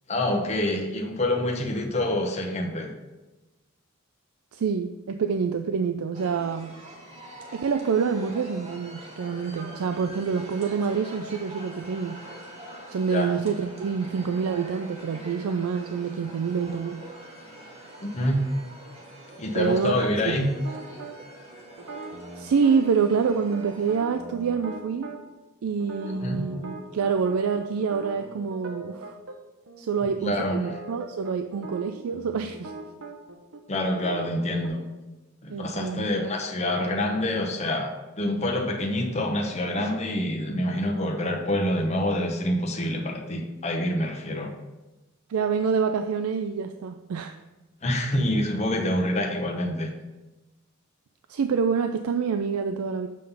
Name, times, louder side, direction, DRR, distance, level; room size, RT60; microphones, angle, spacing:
voice 1, 0.1-2.9 13.1-13.3 18.0-18.5 19.4-20.5 26.2-26.4 30.2-30.7 33.7-34.8 35.4-44.5 47.8-49.9, left 1 dB, 30° left, 2 dB, 0.9 m, -26 dB
voice 2, 4.5-6.7 7.5-12.2 12.9-17.0 19.5-19.9 20.3-20.4 22.4-25.1 25.6-29.2 29.8-32.7 35.5-36.1 44.3-44.4 45.3-47.3 51.3-53.1, right 6 dB, 85° right, 7 dB, 0.4 m, -26 dB
sound 1, 6.1-24.0, right 1 dB, 30° right, 1.4 m, -44 dB
sound 2, 20.6-21.2 21.8-25.2 25.8-29.4 29.7-29.8 30.1-34.7, right 2 dB, 70° right, 0.8 m, -40 dB
7.5 x 3.8 x 5.6 m, 1.1 s
head